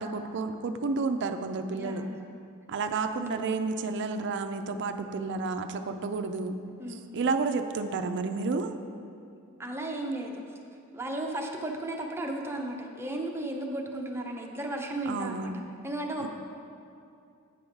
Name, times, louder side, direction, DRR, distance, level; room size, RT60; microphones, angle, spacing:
voice 1, 0.0-2.0 2.7-6.6 7.1-8.7 15.1-15.6 16.2-16.3, right 4 dB, 55° right, 7 dB, 0.4 m, -31 dB
voice 2, 1.8-2.2 6.8-7.1 9.6-10.3 10.9-15.5 15.8-16.3, right 1 dB, 10° right, 1 dB, 0.7 m, -34 dB
8.5 x 5.5 x 4.5 m, 2.5 s
head